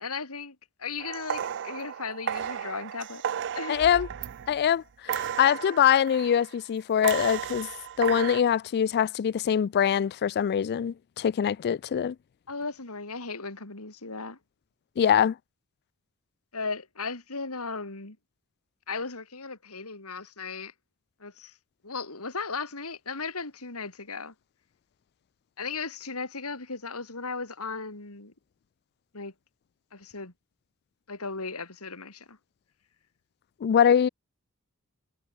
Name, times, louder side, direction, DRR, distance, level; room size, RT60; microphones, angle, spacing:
voice 1, 0.0-3.2 3.5-4.0 12.5-14.4 16.5-18.2 18.9-20.7 21.2-21.5 21.8-24.3 25.6-28.3 29.1-29.3 29.9-30.3 31.1-32.4, left 4 dB, 70° left, 3.2 m, -36 dB
sound 1, 1.0-4.7 5.1-6.5 7.0-8.4, right 9 dB, 55° right, 0.5 m, -34 dB
voice 2, 3.7-4.1 4.5-7.7 8.0-12.2 15.0-15.4 33.6-34.1, left 8 dB, 45° left, 0.3 m, -23 dB
head